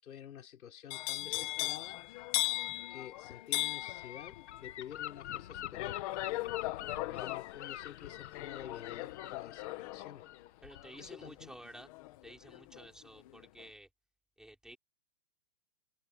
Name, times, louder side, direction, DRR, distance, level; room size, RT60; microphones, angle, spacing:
voice 1, 0.0-2.0 2.9-6.0 7.0-10.2 11.0-11.5, left 10 dB, 60° left, 5.0 m, -49 dB
sound 1, 0.9-12.9 13.2-13.6, left 18 dB, 20° left, 1.3 m, -39 dB
Gull seagull / Wind, 3.8-11.1, left 12 dB, 45° left, 1.8 m, -46 dB
voice 2, 10.6-11.9 12.2-13.9 14.4-14.8, right 1 dB, ahead, 5.3 m, -52 dB
open air
hypercardioid pair, 170°, 47 cm